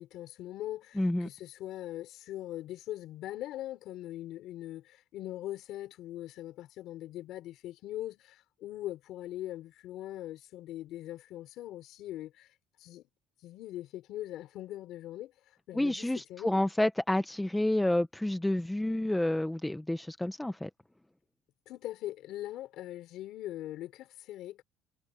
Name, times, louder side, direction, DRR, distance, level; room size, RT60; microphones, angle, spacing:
voice 1, 0.0-12.5 12.8-13.1 13.4-15.3 15.7-16.6 21.7-24.6, left 14 dB, 50° left, 4.5 m, -41 dB
voice 2, 1.0-1.3 15.7-20.7, left 1 dB, 5° left, 0.6 m, -29 dB
cardioid pair, 175°, 0 cm